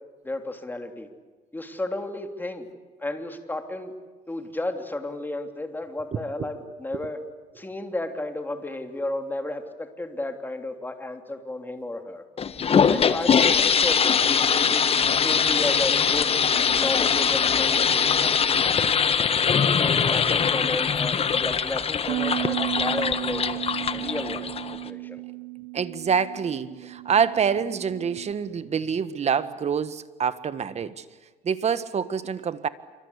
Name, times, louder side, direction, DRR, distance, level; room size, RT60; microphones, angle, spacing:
voice 1, 0.2-1.1 1.5-2.7 3.0-3.9 4.3-7.2 7.5-12.2 12.9-14.9 15.2-16.4 16.7-18.6 19.6-23.4 23.9-24.5 24.8-25.2, left 2 dB, 10° left, 6 dB, 3.3 m, -33 dB
voice 2, 6.1-6.5 6.9-7.0 25.7-31.0 31.4-32.7, right 7 dB, 40° right, 13 dB, 1.6 m, -26 dB
sound 1, 12.4-24.9, left 6 dB, 35° left, 1.3 m, -22 dB
Bass guitar, 22.1-28.3, right 20 dB, 60° right, 1.0 m, -34 dB
28.0 x 25.0 x 8.4 m, 1.4 s
cardioid pair, 110°, 17 cm